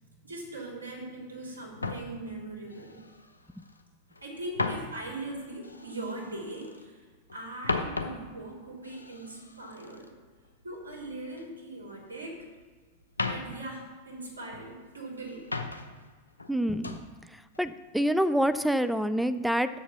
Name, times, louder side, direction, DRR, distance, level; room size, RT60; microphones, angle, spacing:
voice 1, 0.0-3.0 4.2-7.0 7.3-10.1 10.6-12.4 13.2-15.5, right 2 dB, 80° right, -3 dB, 3.0 m, -40 dB
sound 1, 1.8-3.8 4.1-6.9 7.2-11.5 11.7-12.7 13.0-14.8 15.2-16.1 16.4-17.1 17.5-17.8, left 3 dB, 80° left, 0.7 m, -37 dB
voice 2, 16.5-17.0 17.6-19.7, equal, ahead, 12 dB, 0.4 m, -26 dB
7.2 x 7.1 x 5.9 m, 1.4 s
figure-of-eight pair, 90°, 0 cm